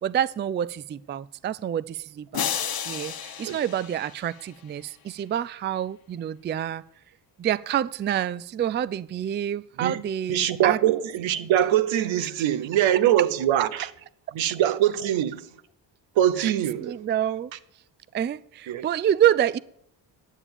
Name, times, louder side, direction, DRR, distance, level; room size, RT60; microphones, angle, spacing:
voice 1, 0.0-2.5 2.8-6.8 7.4-10.8 16.4-16.5 16.8-17.5 18.1-19.6, right 10 dB, 25° right, 0.3 m, -27 dB
sound 1, 2.3-4.7, left 8 dB, 50° left, 1.1 m, -32 dB
voice 2, 10.3-13.9 14.3-15.5 16.2-17.0 18.7-18.9, right 11 dB, 80° right, 1.0 m, -23 dB
10.0 x 7.0 x 8.5 m
cardioid pair, 85°, 45 cm